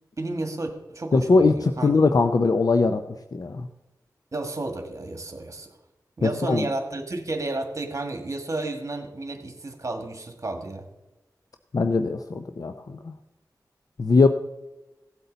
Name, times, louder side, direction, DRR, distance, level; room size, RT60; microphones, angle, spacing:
voice 1, 0.2-1.9 4.3-5.7 6.2-10.9, right 2 dB, 45° right, 5 dB, 1.8 m, -32 dB
voice 2, 1.1-3.0 3.3-3.7 6.2-6.6 11.7-13.1 14.0-14.3, left 3 dB, 60° left, 8 dB, 0.6 m, -21 dB
16.5 x 8.1 x 4.0 m, 0.98 s
wide cardioid pair, 85°, 7 cm